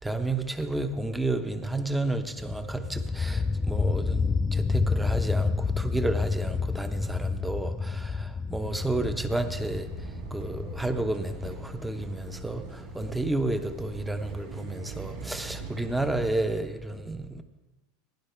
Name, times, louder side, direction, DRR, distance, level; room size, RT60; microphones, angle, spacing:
voice 1, 0.0-17.4, right 2 dB, 5° right, 0.8 m, -31 dB
sound 1, 2.4-14.0, left 4 dB, 20° left, 0.4 m, -30 dB
sound 2, 8.6-16.6, right 3 dB, 75° right, 2.5 m, -41 dB
15.5 x 10.5 x 3.4 m
hypercardioid pair, 95°, 0 cm